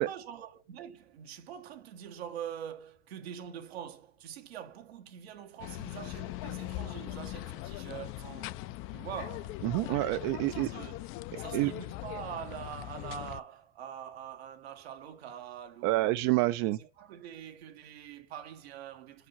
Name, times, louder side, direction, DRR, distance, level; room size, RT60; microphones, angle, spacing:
voice 1, 0.0-8.6 8.9-9.6 10.4-11.1 11.4-16.2 16.8-19.3, right 9 dB, 80° right, 1.5 m, -44 dB
sound 1, 5.6-13.4, left 17 dB, 45° left, 0.5 m, -40 dB
voice 2, 9.6-10.7 11.5-11.7 15.8-16.8, right 18 dB, 55° right, 0.6 m, -27 dB
5.3 x 4.9 x 5.6 m
hypercardioid pair, 110°, 31 cm